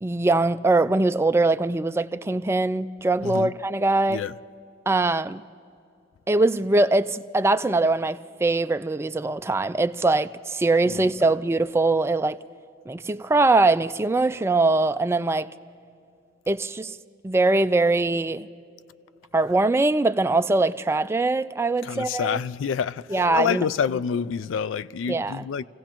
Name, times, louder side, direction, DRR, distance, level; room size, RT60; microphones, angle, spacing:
voice 1, 0.0-4.2 4.9-5.4 6.3-12.4 12.9-15.5 16.5-17.0 17.2-18.5 19.3-22.4 23.1-23.7 25.1-25.4, right 2 dB, 15° right, 0.3 m, -22 dB
voice 2, 3.2-3.5 4.1-4.3 10.9-11.1 21.8-25.6, left 7 dB, 90° left, 0.4 m, -27 dB
28.0 x 16.5 x 3.0 m
head